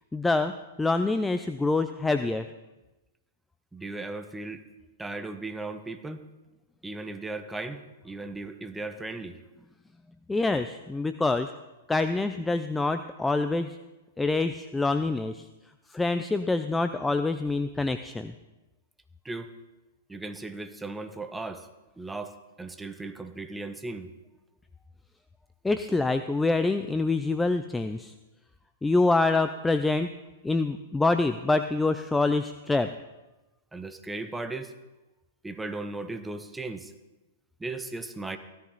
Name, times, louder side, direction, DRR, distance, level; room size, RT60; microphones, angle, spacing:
voice 1, 0.1-2.5 10.3-11.5 11.9-13.8 14.2-15.5 15.9-18.3 25.6-28.1 28.8-30.1 30.4-32.9, left 3 dB, 10° left, 10 dB, 0.5 m, -26 dB
voice 2, 3.7-4.6 5.0-6.2 6.8-9.4 19.2-19.5 20.1-21.7 22.0-24.1 33.7-34.7 35.4-36.9 37.6-38.4, right 2 dB, 10° right, 8 dB, 1.1 m, -37 dB
16.5 x 13.5 x 4.1 m, 1.1 s
figure-of-eight pair, 105°, 0 cm